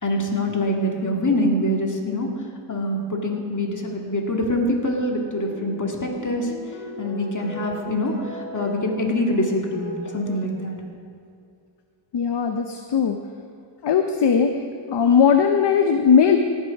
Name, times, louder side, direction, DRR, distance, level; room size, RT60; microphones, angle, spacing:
voice 1, 0.0-6.5 7.0-10.8, left 1 dB, 40° left, 0 dB, 2.1 m, -25 dB
sound 1, 5.4-10.4, left 1 dB, 80° left, 2.1 m, -37 dB
voice 2, 12.1-13.2 13.8-14.6 14.9-16.4, left 7 dB, 55° left, 5 dB, 0.7 m, -18 dB
18.0 x 6.3 x 5.3 m, 2.3 s
cardioid pair, 55°, 48 cm